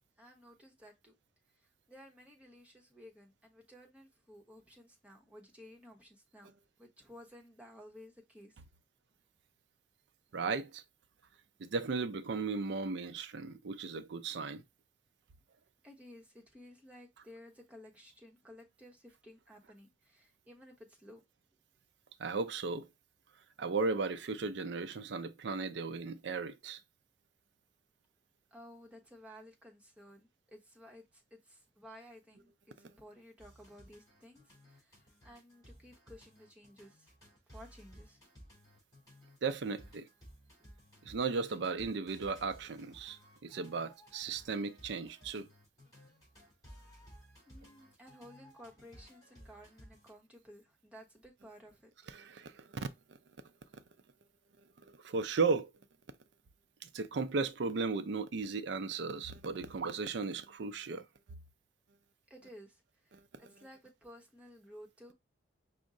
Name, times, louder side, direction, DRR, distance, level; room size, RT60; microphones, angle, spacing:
voice 1, 0.2-1.2 1.6-6.5 6.8-8.6 15.8-21.2 28.5-37.1 37.5-38.2 40.6-40.7 47.5-51.9 62.3-65.1, equal, 5° right, 0.9 m, -55 dB
voice 2, 10.3-10.8 11.6-14.6 22.2-22.9 23.6-26.8 39.4-40.1 41.0-45.5 52.1-52.9 55.0-55.7 56.8-61.1 63.1-63.5, right 4 dB, 60° right, 0.4 m, -36 dB
sound 1, 33.4-50.1, equal, 20° left, 2.9 m, -58 dB
5.2 x 2.1 x 3.6 m
head